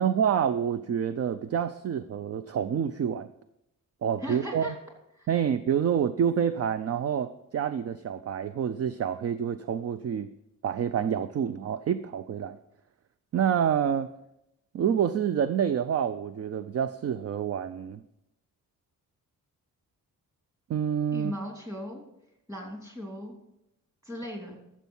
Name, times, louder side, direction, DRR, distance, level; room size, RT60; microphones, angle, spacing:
voice 1, 0.0-3.3 4.0-4.7 5.3-10.3 10.6-12.6 13.3-14.1 14.7-18.0 20.7-21.3, right 8 dB, 45° right, 12 dB, 0.4 m, -27 dB
voice 2, 4.2-4.8 5.2-5.3 21.1-22.0 22.5-23.4 24.0-24.5, equal, 10° right, 0 dB, 2.9 m, -37 dB
13.5 x 7.2 x 5.5 m, 0.84 s
wide cardioid pair, 155°, 34 cm